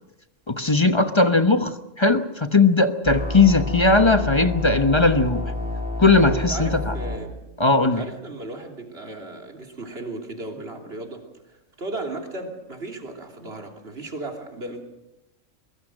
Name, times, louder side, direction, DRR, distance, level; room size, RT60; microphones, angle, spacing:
voice 1, 0.5-5.4 6.0-6.7 7.6-8.0, left 3 dB, 25° left, 9 dB, 1.1 m, -18 dB
sound 1, 3.0-7.2, left 2 dB, 5° right, 3.7 m, -29 dB
voice 2, 6.5-7.3 7.8-14.8, right 2 dB, 50° right, 2 dB, 3.5 m, -36 dB
23.0 x 22.5 x 6.5 m, 0.94 s
omnidirectional pair, 1.3 m